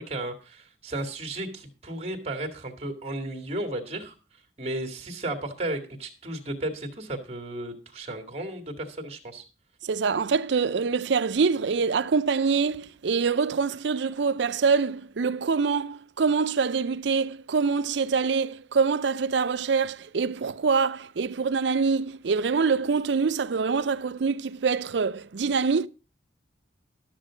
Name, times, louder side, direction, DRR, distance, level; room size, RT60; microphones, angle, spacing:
voice 1, 0.0-9.4, right 1 dB, 35° right, 2.1 m, -34 dB
voice 2, 9.8-25.9, right 5 dB, 75° right, 0.5 m, -25 dB
12.5 x 7.3 x 5.0 m
head